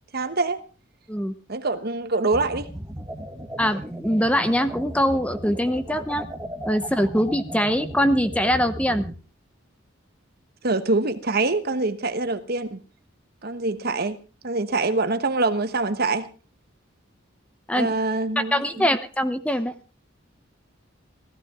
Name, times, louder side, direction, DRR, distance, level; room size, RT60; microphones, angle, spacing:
voice 1, 0.1-0.6 1.5-2.7 10.6-12.8 13.4-14.2 14.4-16.3 17.7-18.8, right 3 dB, 50° right, 1.2 m, -25 dB
sound 1, 2.3-9.1, right 1 dB, 15° right, 1.6 m, -36 dB
voice 2, 3.6-6.3 6.6-9.0 17.7-17.9 18.4-19.7, equal, 5° left, 0.9 m, -23 dB
16.5 x 15.5 x 3.7 m
head